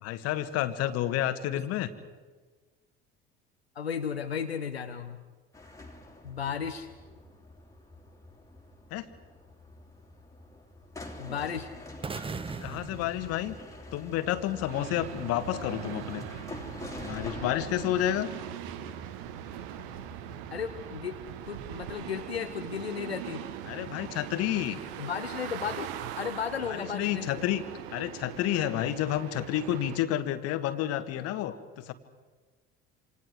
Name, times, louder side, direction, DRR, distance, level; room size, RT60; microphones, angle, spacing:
voice 1, 0.0-1.9 8.9-9.1 12.6-13.5 13.9-16.2 17.0-18.3 23.7-24.8 26.7-27.6 27.9-31.9, left 12 dB, 50° left, 11 dB, 1.7 m, -30 dB
voice 2, 3.7-5.2 6.2-6.9 11.2-11.7 20.5-23.4 25.0-25.9 26.2-27.4, left 7 dB, 85° left, 6 dB, 1.0 m, -34 dB
sound 1, 5.5-20.9, left 2 dB, 10° left, 3.3 m, -46 dB
sound 2, 12.0-14.1, right 5 dB, 15° right, 0.9 m, -39 dB
sound 3, 14.7-30.0, right 11 dB, 60° right, 1.4 m, -41 dB
27.5 x 27.0 x 4.7 m, 1.4 s
figure-of-eight pair, 65°, 31 cm